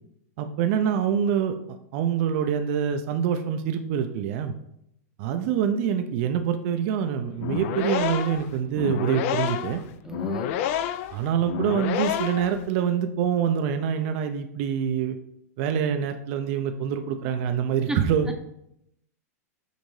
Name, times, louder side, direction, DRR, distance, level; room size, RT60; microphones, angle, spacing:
voice 1, 0.4-1.6 1.9-4.5 5.2-9.8 11.1-15.2 15.6-18.3, right 8 dB, 50° right, 7 dB, 0.4 m, -25 dB
sound 1, 7.3-12.6, left 10 dB, 55° left, 0.3 m, -29 dB
voice 2, 10.0-10.6 17.9-18.0, right 2 dB, 5° right, 4 dB, 0.6 m, -32 dB
6.4 x 2.6 x 3.1 m, 0.77 s
hypercardioid pair, 115°, 9 cm